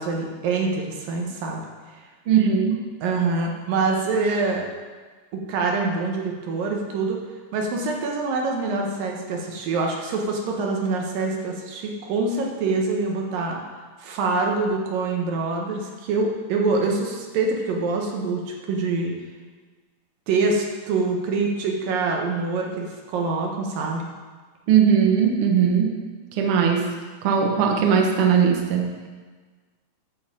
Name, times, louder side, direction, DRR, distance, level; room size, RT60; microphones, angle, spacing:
voice 1, 0.0-1.6 3.0-4.7 5.3-7.2 7.5-13.6 14.0-19.1 20.3-24.0, right 3 dB, 80° right, 0 dB, 3.0 m, -25 dB
voice 2, 2.3-2.8 24.7-26.0 26.4-26.9 27.2-29.1, right 7 dB, 60° right, 1 dB, 1.6 m, -19 dB
10.0 x 5.5 x 7.4 m, 1.4 s
omnidirectional pair, 3.9 m